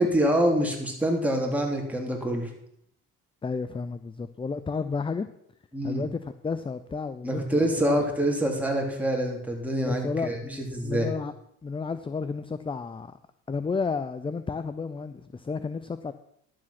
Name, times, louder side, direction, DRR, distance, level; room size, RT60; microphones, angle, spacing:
voice 1, 0.0-2.5 5.7-6.0 7.2-10.4 10.7-11.1, right 1 dB, 5° right, 0 dB, 3.2 m, -26 dB
voice 2, 3.4-5.3 5.8-7.4 7.8-8.0 9.8-11.3 11.6-13.2 13.5-16.1, left 4 dB, 15° left, 13 dB, 0.5 m, -32 dB
11.5 x 7.7 x 5.9 m, 0.71 s
supercardioid pair, 90°, 34 cm